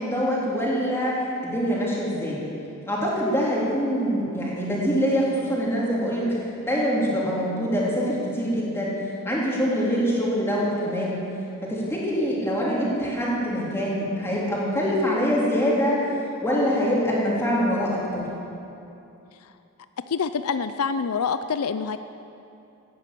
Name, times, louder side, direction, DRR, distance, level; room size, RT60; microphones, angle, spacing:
voice 1, 0.0-2.4 2.9-6.4 6.6-8.9 9.2-11.2 11.6-16.1 16.4-18.3, equal, 10° left, -6 dB, 3.5 m, -24 dB
voice 2, 20.1-22.0, left 5 dB, 75° left, 11 dB, 0.5 m, -27 dB
16.0 x 10.5 x 8.4 m, 2.8 s
head